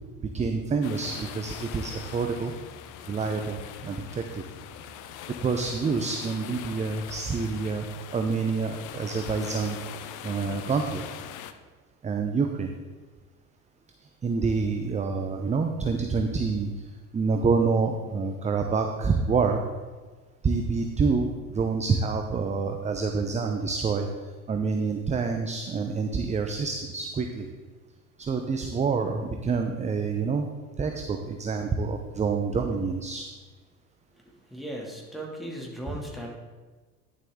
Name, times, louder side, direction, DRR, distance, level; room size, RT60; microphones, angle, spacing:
voice 1, 0.3-2.5 3.1-4.4 5.4-11.0 12.0-12.7 14.2-19.6 20.4-27.5 28.2-30.5 30.8-33.3 35.9-36.0, right 4 dB, 15° right, 5 dB, 0.6 m, -27 dB
sound 1, 0.8-11.5, left 9 dB, 45° left, 0.7 m, -42 dB
voice 2, 34.5-36.3, equal, ahead, -3 dB, 2.3 m, -37 dB
10.5 x 7.2 x 3.7 m, 1.4 s
hypercardioid pair, 75°, 45 cm